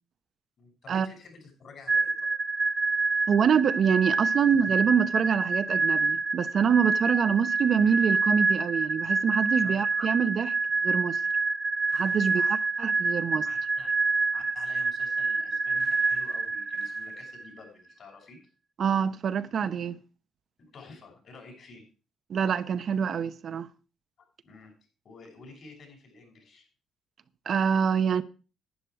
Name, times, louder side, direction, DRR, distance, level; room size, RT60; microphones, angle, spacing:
voice 1, 0.6-2.3 9.6-9.8 12.2-12.5 13.4-13.9 14.3-18.4 20.6-21.8 24.4-24.7 25.0-26.7, left 4 dB, 60° left, 6.4 m, -50 dB
sound 1, 1.9-17.5, right 3 dB, 25° right, 1.2 m, -27 dB
voice 2, 3.3-10.5 10.8-11.2 11.9-12.4 12.8-13.4 18.8-20.0 22.3-23.7 27.5-28.2, right 7 dB, 60° right, 0.8 m, -25 dB
11.5 x 10.0 x 4.8 m
cardioid pair, 90°, 0 cm